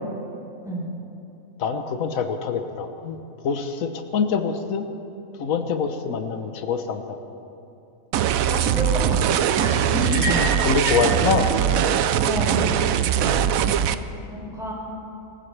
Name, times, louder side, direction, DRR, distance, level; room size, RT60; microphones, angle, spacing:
voice 1, 1.6-3.2 3.4-4.8 5.4-7.2 10.0-11.5 13.2-13.5, left 6 dB, 80° left, 7 dB, 1.3 m, -25 dB
sound 1, 8.1-13.9, right 9 dB, 85° right, 1.0 m, -21 dB
voice 2, 8.4-9.2 9.6-10.1 12.2-12.7 13.9-14.0 14.3-14.7, right 1 dB, ahead, -4 dB, 4.4 m, -29 dB
sound 2, 10.0-11.1, left 1 dB, 65° left, 2.7 m, -28 dB
26.5 x 15.5 x 3.3 m, 2.8 s
omnidirectional pair, 1.4 m